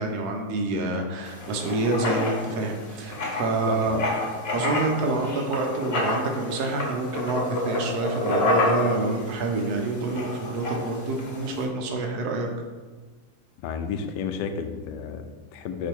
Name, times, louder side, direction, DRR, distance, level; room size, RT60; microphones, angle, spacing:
voice 1, 0.0-4.0 4.5-12.5, right 2 dB, 70° right, 3 dB, 1.4 m, -27 dB
Writing, 1.3-11.6, left 2 dB, 45° left, 1.0 m, -29 dB
voice 2, 3.7-4.0 13.6-15.9, left 6 dB, 85° left, 7 dB, 1.2 m, -32 dB
5.1 x 4.6 x 4.5 m, 1.4 s
omnidirectional pair, 1.8 m